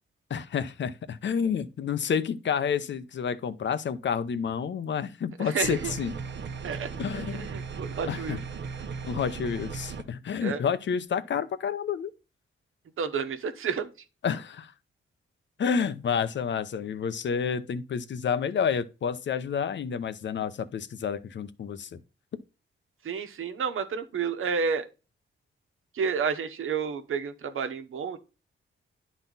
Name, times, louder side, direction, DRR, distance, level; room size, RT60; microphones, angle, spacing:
voice 1, 0.3-6.1 7.0-7.5 8.1-8.4 9.0-12.1 14.2-14.7 15.6-22.0, left 7 dB, 60° left, 0.8 m, -29 dB
voice 2, 5.4-5.9 6.6-8.4 10.4-10.6 13.0-13.9 23.0-24.8 25.9-28.2, right 6 dB, 80° right, 1.2 m, -30 dB
sound 1, 5.6-10.0, right 5 dB, 60° right, 0.9 m, -37 dB
10.5 x 4.1 x 4.0 m
cardioid pair, 100°, 21 cm